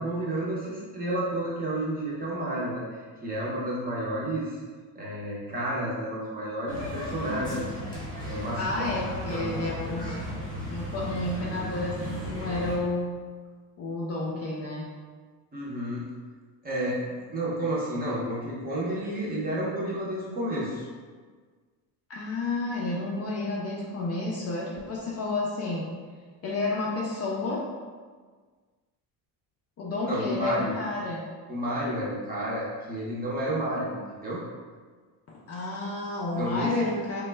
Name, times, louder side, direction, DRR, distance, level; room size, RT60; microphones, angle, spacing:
voice 1, 0.0-4.6 4.9-7.8 8.2-8.9 9.3-9.9 15.5-16.0 16.6-17.0 17.3-20.9 30.1-30.7 31.5-34.4 36.4-36.7, right 1 dB, 20° right, -6 dB, 0.6 m, -31 dB
sound 1, 6.7-12.8, equal, 10° left, 0.9 m, -35 dB
voice 2, 8.6-10.3 10.7-13.1 13.8-14.8 22.1-25.9 26.4-27.6 29.8-31.3 35.3-37.2, left 2 dB, 35° left, -4 dB, 0.4 m, -31 dB
3.1 x 2.2 x 3.2 m, 1.5 s
cardioid pair, 150°, 42 cm